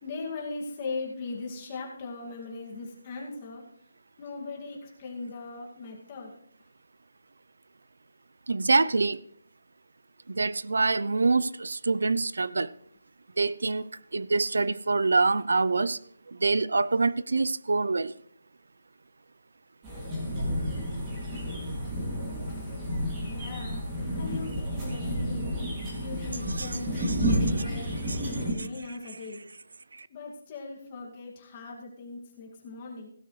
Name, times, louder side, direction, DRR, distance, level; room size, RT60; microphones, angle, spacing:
voice 1, 0.0-3.6 4.2-6.3 22.6-22.7 23.2-23.8 24.1-25.5 26.0-29.4 30.1-33.1, left 3 dB, 20° left, 2.1 m, -39 dB
voice 2, 8.5-9.2 10.3-12.7 13.4-13.8 14.1-16.0 16.3-18.1 26.5-27.4 28.1-28.2 28.6-29.0 30.0-30.1, right 3 dB, 75° right, 0.5 m, -26 dB
sound 1, 19.8-28.5, equal, 15° right, 2.5 m, -31 dB
16.5 x 11.5 x 3.2 m
hypercardioid pair, 175°, 0 cm